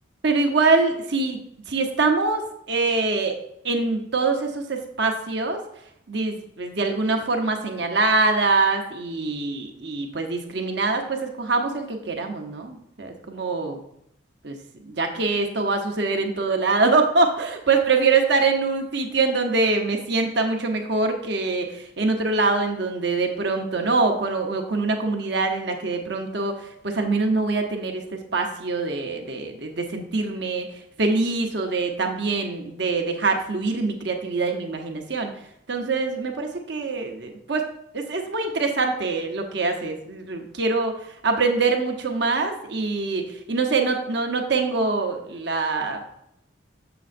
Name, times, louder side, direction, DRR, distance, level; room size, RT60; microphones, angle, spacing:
voice 1, 0.2-1.4 1.7-2.4 2.7-3.4 3.6-5.6 6.1-13.8 14.4-14.5 14.8-30.7 31.0-35.3 35.7-37.6 37.9-40.9 41.2-46.0, right 3 dB, 60° right, 4 dB, 1.0 m, -24 dB
7.5 x 6.9 x 2.6 m, 0.75 s
head